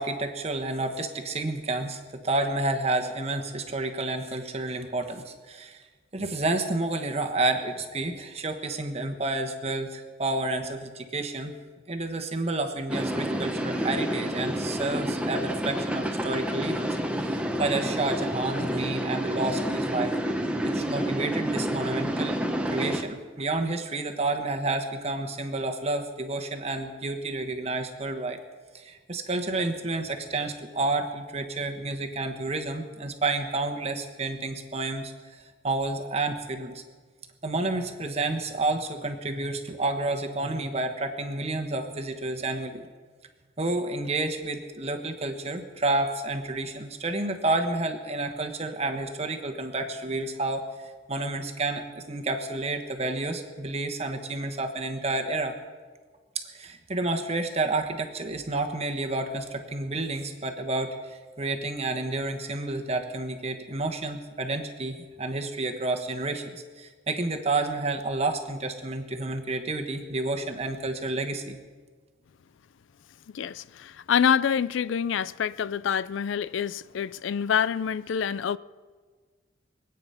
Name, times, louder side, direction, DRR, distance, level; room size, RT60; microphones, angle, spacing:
voice 1, 0.0-5.8 6.1-11.5 11.9-20.1 20.6-22.4 22.7-28.4 28.7-35.1 35.6-36.8 37.4-42.9 43.6-50.6 51.1-55.5 56.3-71.6, right 2 dB, 30° right, 1.3 m, -30 dB
sound 1, 12.9-23.0, equal, 5° right, 1.0 m, -29 dB
voice 2, 73.3-78.6, left 7 dB, 75° left, 0.4 m, -26 dB
24.0 x 9.2 x 5.7 m
head